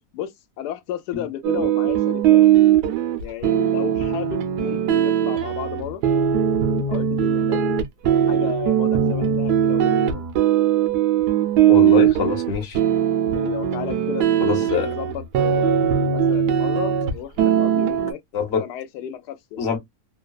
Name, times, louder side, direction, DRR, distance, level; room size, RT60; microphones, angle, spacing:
voice 1, 0.1-2.4 3.2-6.0 6.9-7.6 8.3-10.3 13.3-18.2 18.5-19.6, left 10 dB, 85° left, 1.1 m, -33 dB
sound 1, 1.4-17.1 17.4-18.1, right 9 dB, 80° right, 1.2 m, -19 dB
voice 2, 11.7-12.8 14.4-14.9 18.3-18.6 19.6-19.8, left 6 dB, 50° left, 0.9 m, -24 dB
3.1 x 2.2 x 2.2 m
omnidirectional pair, 1.7 m